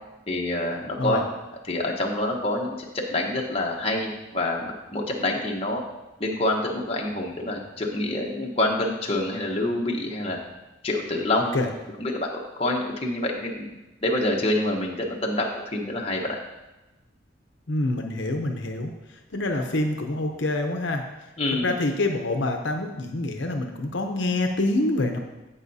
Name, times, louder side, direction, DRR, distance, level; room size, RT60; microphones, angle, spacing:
voice 1, 0.3-1.2 1.7-5.8 6.2-10.4 10.8-11.6 12.0-13.8 14.0-16.4 21.4-21.7, left 1 dB, 30° left, -1 dB, 1.0 m, -27 dB
voice 2, 17.7-21.1 21.5-25.2, left 2 dB, 70° left, 4 dB, 0.7 m, -26 dB
16.5 x 5.6 x 2.8 m, 1.0 s
head